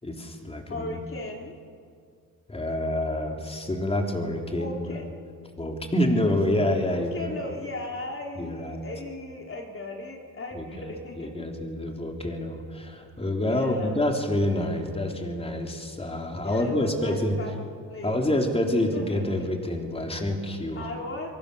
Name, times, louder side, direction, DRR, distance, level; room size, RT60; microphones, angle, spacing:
voice 1, 0.0-1.0 2.5-4.9 5.6-7.3 8.4-8.8 10.6-10.9 11.2-17.4 18.0-20.8, left 1 dB, 15° left, 2 dB, 3.6 m, -27 dB
voice 2, 0.6-1.5 4.5-5.0 6.8-11.6 13.3-14.0 16.4-17.5 17.9-18.4 18.9-19.2 20.7-21.3, left 2 dB, 35° left, 1 dB, 3.1 m, -37 dB
28.0 x 23.5 x 7.0 m, 2.2 s
cardioid pair, 100°, 36 cm